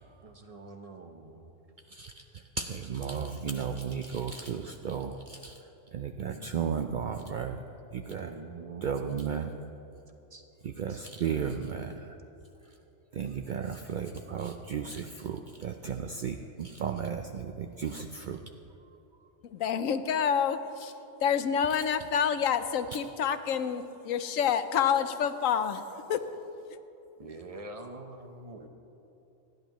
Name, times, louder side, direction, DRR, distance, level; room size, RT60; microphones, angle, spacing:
voice 1, 0.2-1.5 6.2-6.5 8.1-8.9 10.3-10.4 10.9-11.0 27.2-28.7, right 3 dB, 30° right, 5 dB, 0.9 m, -45 dB
voice 2, 1.9-5.6 5.9-7.6 7.9-8.3 8.8-9.5 10.6-12.2 12.6-12.7 13.1-18.4, right 7 dB, 65° right, 5 dB, 0.5 m, -34 dB
voice 3, 19.5-20.9 21.2-25.8 26.1-26.2, left 7 dB, 80° left, 10 dB, 1.1 m, -28 dB
28.0 x 10.5 x 3.0 m, 3.0 s
omnidirectional pair, 1.4 m